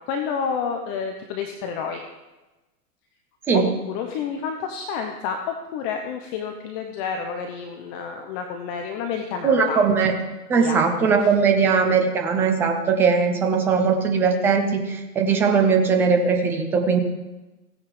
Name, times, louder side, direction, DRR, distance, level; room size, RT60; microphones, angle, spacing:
voice 1, 0.0-2.0 3.5-5.4 5.7-9.8 10.5-10.8 11.2-11.3, left 6 dB, 30° left, 4 dB, 1.0 m, -29 dB
voice 2, 9.4-10.1 10.5-17.0, right 5 dB, 5° right, 4 dB, 0.4 m, -20 dB
16.0 x 9.5 x 3.4 m, 1.1 s
figure-of-eight pair, 115°, 47 cm